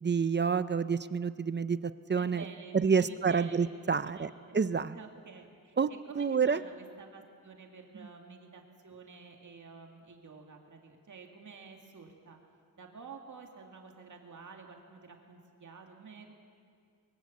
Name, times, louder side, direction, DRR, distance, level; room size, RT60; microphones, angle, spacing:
voice 1, 0.0-1.8 2.1-2.4 2.7-5.0 5.8-5.9 6.1-6.6, right 6 dB, 30° right, 13 dB, 0.5 m, -28 dB
voice 2, 2.2-3.7 4.0-4.6 4.9-12.4 12.8-16.3, right 5 dB, 55° right, 2 dB, 2.3 m, -50 dB
23.5 x 22.5 x 8.5 m, 2.3 s
wide cardioid pair, 175°, 36 cm